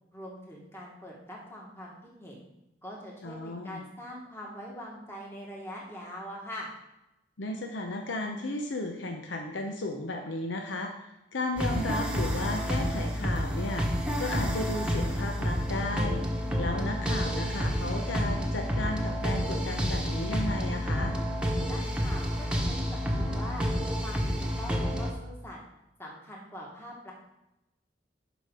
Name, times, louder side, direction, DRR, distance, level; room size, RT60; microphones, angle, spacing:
voice 1, 0.1-2.4 2.8-6.7 21.7-23.7 24.0-25.6 26.0-27.1, equal, 15° left, -3 dB, 1.5 m, -43 dB
voice 2, 3.2-3.8 7.4-16.2 16.6-21.1, left 2 dB, 85° left, 3 dB, 0.8 m, -34 dB
sound 1, 11.6-25.1, equal, 5° right, 1.1 m, -29 dB
12.0 x 5.2 x 3.7 m, 0.90 s
head